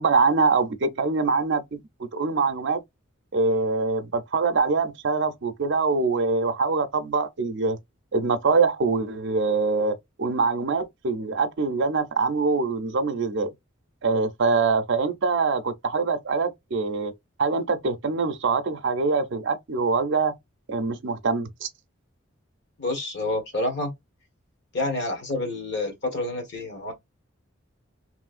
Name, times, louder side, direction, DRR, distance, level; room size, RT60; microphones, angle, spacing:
voice 1, 0.0-1.8 2.1-2.8 3.3-7.8 8.1-13.5 14.0-17.1 17.4-20.3 20.7-21.7, right 4 dB, 60° right, 0.5 m, -24 dB
voice 2, 22.8-23.9 24.7-26.9, left 2 dB, 55° left, 1.2 m, -28 dB
3.0 x 2.7 x 2.4 m
head